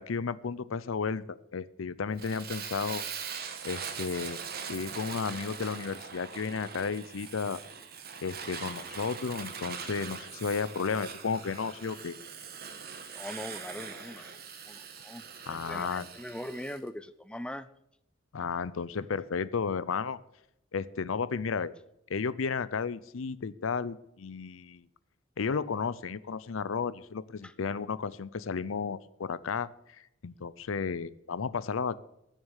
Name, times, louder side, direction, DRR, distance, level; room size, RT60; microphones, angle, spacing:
voice 1, 0.0-3.0 3.6-4.4 4.7-7.6 8.2-12.1 15.5-16.1 18.3-20.2 20.7-21.7 22.1-24.9 25.4-32.0, left 5 dB, 90° left, 17 dB, 0.6 m, -33 dB
Fire, 2.2-16.8, right 6 dB, 50° right, 1.4 m, -42 dB
voice 2, 13.1-14.4 14.7-15.2 15.5-17.7 27.4-27.5, left 1 dB, 5° left, 13 dB, 0.4 m, -41 dB
14.5 x 6.5 x 6.4 m, 0.81 s
head